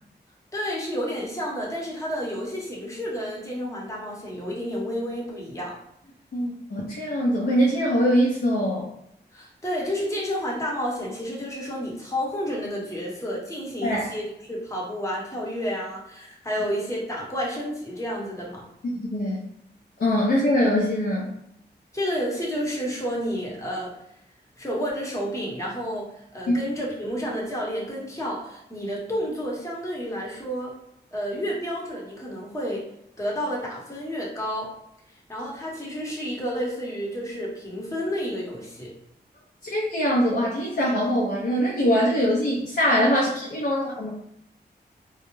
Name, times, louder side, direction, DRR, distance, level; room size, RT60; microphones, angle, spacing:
voice 1, 0.5-5.8 9.3-18.6 21.9-23.9 24.6-30.7 31.1-32.8 33.2-34.7 35.3-38.9, equal, 15° left, -4 dB, 0.8 m, -30 dB
voice 2, 6.3-8.9 13.8-14.1 18.9-19.4 20.0-21.3 26.5-26.6 39.6-44.1, equal, 65° left, -4 dB, 0.6 m, -23 dB
2.2 x 2.0 x 3.0 m, 0.77 s
wide cardioid pair, 70°, 18 cm